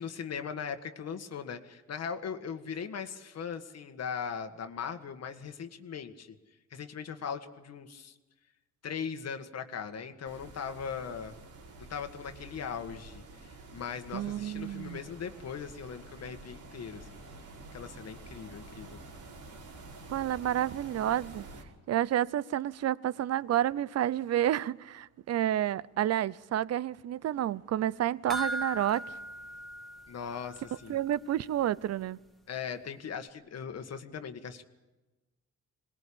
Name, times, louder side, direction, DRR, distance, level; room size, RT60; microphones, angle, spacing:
voice 1, 0.0-6.3 6.7-8.1 8.8-11.3 11.8-17.2 17.7-19.0 30.1-31.0 32.5-34.6, left 7 dB, 55° left, 1.8 m, -39 dB
sound 1, 10.2-21.6, right 2 dB, 75° right, 4.7 m, -49 dB
voice 2, 14.1-15.0 20.1-21.4 21.9-29.1 30.9-32.2, right 12 dB, 55° right, 0.7 m, -30 dB
sound 2, 28.3-30.8 31.1-31.2 31.7-31.8, equal, ahead, 2.0 m, -38 dB
22.5 x 20.0 x 8.7 m
cardioid pair, 90°, 30 cm